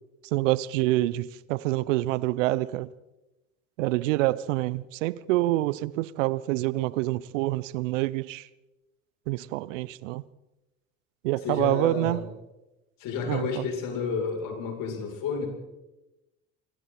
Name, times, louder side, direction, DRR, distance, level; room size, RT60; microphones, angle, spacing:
voice 1, 0.3-2.9 3.8-8.5 9.3-10.2 11.2-12.3 13.2-13.7, right 17 dB, 70° right, 0.9 m, -27 dB
voice 2, 11.4-12.2 13.0-15.5, left 5 dB, 55° left, 7.7 m, -31 dB
26.5 x 23.5 x 4.4 m
hypercardioid pair, 65°, 38 cm